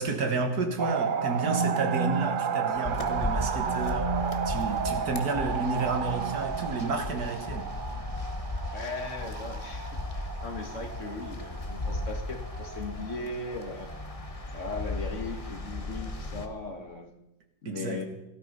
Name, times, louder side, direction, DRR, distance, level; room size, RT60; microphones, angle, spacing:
voice 1, 0.0-7.7 17.7-18.0, right 3 dB, 75° right, 6 dB, 2.1 m, -31 dB
sound 1, 0.8-16.7 17.0-17.1, right 6 dB, 50° right, 0.6 m, -33 dB
sound 2, 2.8-16.5, left 2 dB, 25° left, 1.0 m, -36 dB
voice 2, 8.7-13.9 14.5-17.1 17.6-18.0, left 3 dB, 50° left, 6 dB, 1.8 m, -38 dB
15.5 x 12.5 x 5.4 m, 0.90 s
omnidirectional pair, 1.7 m